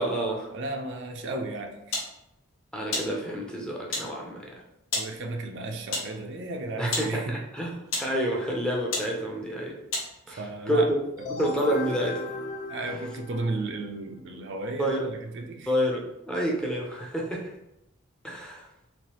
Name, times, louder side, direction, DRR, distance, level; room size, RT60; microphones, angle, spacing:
voice 1, 0.0-0.5 2.7-4.5 6.8-9.8 10.3-11.0 11.3-12.4 14.8-15.1 15.7-17.5 18.2-18.7, equal, 5° left, -2 dB, 0.5 m, -29 dB
voice 2, 0.5-2.0 4.9-7.4 10.3-10.9 11.2-11.3 12.7-15.7, right 2 dB, 60° right, 4 dB, 0.5 m, -34 dB
sound 1, 1.9-2.1 2.9-3.1 3.9-4.1 4.9-5.1 5.9-6.1 6.9-7.1 7.8-8.1 8.9-9.1 9.9-10.1, left 2 dB, 80° left, 0.9 m, -30 dB
sound 2, 11.2-13.8, left 3 dB, 40° left, 0.7 m, -36 dB
3.2 x 2.9 x 3.0 m, 0.87 s
head